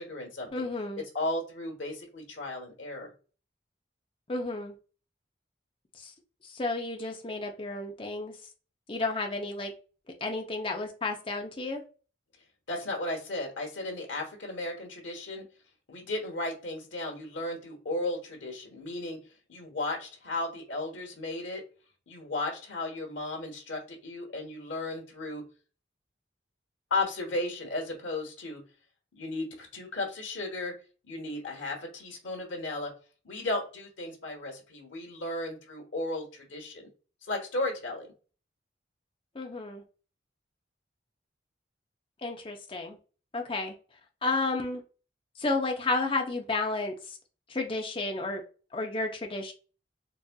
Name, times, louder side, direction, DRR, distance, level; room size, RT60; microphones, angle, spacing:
voice 1, 0.0-0.7 1.1-3.1 12.7-15.4 15.9-19.2 19.5-21.6 22.1-25.4 26.9-28.6 29.1-30.7 31.0-32.9 33.2-36.9 37.3-38.1, left 2 dB, 90° left, 1 dB, 1.0 m, -35 dB
voice 2, 0.5-1.0 4.3-4.7 5.9-6.1 6.4-8.4 8.9-9.7 10.2-11.8 39.3-39.8 42.2-43.0 43.3-43.7 44.2-44.8 45.4-47.2 47.5-48.4 48.7-49.5, left 3 dB, 30° left, 3 dB, 0.6 m, -32 dB
4.0 x 2.5 x 2.2 m, 0.36 s
head